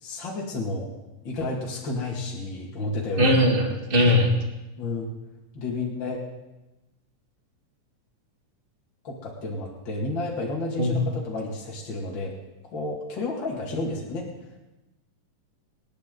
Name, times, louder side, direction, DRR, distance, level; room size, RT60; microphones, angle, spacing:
voice 1, 0.0-0.9 1.2-3.4 4.8-5.1 5.5-6.2 9.0-12.3 12.7-14.3, left 2 dB, 40° left, -3 dB, 2.6 m, -31 dB
voice 2, 3.2-4.3 10.8-11.0, left 1 dB, 25° right, 2 dB, 1.3 m, -20 dB
25.0 x 10.0 x 3.9 m, 1.0 s
omnidirectional pair, 3.6 m